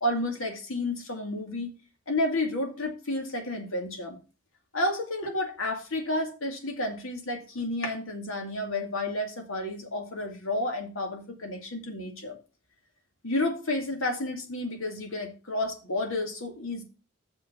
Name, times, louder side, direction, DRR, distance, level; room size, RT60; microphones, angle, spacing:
voice 1, 0.0-1.7 2.1-4.2 4.7-12.4 13.2-16.8, left 1 dB, 75° left, 4 dB, 2.4 m, -31 dB
6.9 x 5.7 x 6.7 m, 0.33 s
head